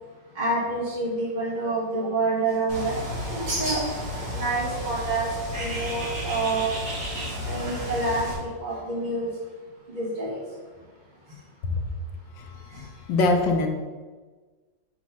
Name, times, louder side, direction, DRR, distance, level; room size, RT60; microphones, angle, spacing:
voice 1, 0.3-3.0 3.3-3.8 4.3-5.3 5.6-6.7 7.5-9.3 9.9-10.4 12.7-12.8, right 2 dB, 30° right, -6 dB, 1.2 m, -27 dB
Bird, 2.7-8.3, equal, 85° right, 3.0 m, -32 dB
voice 2, 12.4-13.7, left 2 dB, 80° left, 3 dB, 1.5 m, -24 dB
6.2 x 3.1 x 5.7 m, 1.4 s
omnidirectional pair, 1.9 m